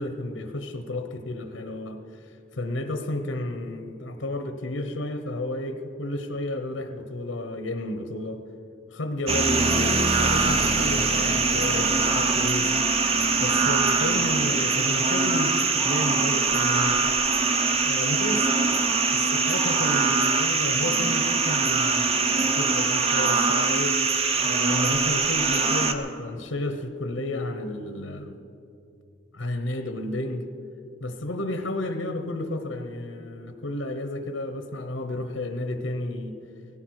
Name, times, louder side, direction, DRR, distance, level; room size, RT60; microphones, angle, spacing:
voice 1, 0.0-2.0 2.5-8.4 8.9-12.7 13.4-17.1 17.8-18.5 19.1-23.9 24.4-28.4 29.3-30.4 31.0-36.4, left 1 dB, 85° left, 7 dB, 1.0 m, -32 dB
sound 1, 9.3-25.9, right 4 dB, 30° right, 0.9 m, -23 dB
17.5 x 16.0 x 4.8 m, 2.6 s
head